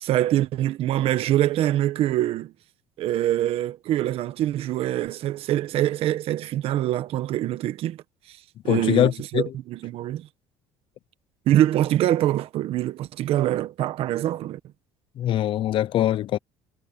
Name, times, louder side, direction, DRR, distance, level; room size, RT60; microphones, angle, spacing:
voice 1, 0.0-2.5 3.0-8.0 8.3-8.4 8.6-10.3 11.5-14.6, right 13 dB, 60° right, 1.4 m, -24 dB
voice 2, 8.7-9.5 15.2-16.4, left 12 dB, 50° left, 0.7 m, -23 dB
cardioid pair, 135°, 11 cm